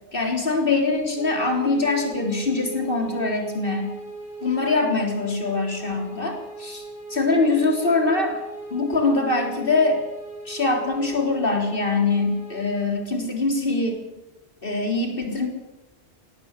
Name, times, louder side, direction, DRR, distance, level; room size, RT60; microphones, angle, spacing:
voice 1, 0.1-3.9 4.4-6.8 7.1-8.4 8.7-10.0 10.5-14.0 14.6-15.5, left 3 dB, 50° left, 3 dB, 3.9 m, -23 dB
sound 1, 1.2-12.8, right 2 dB, 55° right, 5.0 m, -39 dB
18.0 x 17.5 x 8.3 m, 1.0 s
omnidirectional pair, 1.2 m